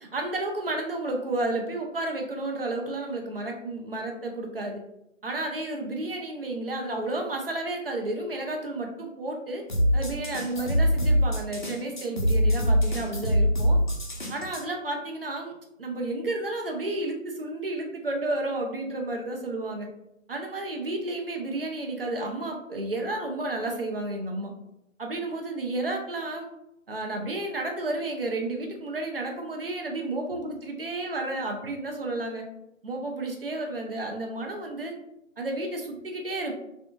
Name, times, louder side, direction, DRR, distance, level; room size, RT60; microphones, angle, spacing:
voice 1, 0.1-4.8 5.2-9.6 9.9-13.8 14.3-15.5 15.8-19.9 20.3-24.5 25.0-26.5 26.9-32.4 32.8-34.9 35.4-36.5, right 2 dB, 45° right, 2 dB, 0.5 m, -31 dB
sound 1, 9.7-14.6, equal, 40° left, 0.5 m, -23 dB
3.3 x 2.5 x 2.4 m, 0.84 s
figure-of-eight pair, 150°, 40 cm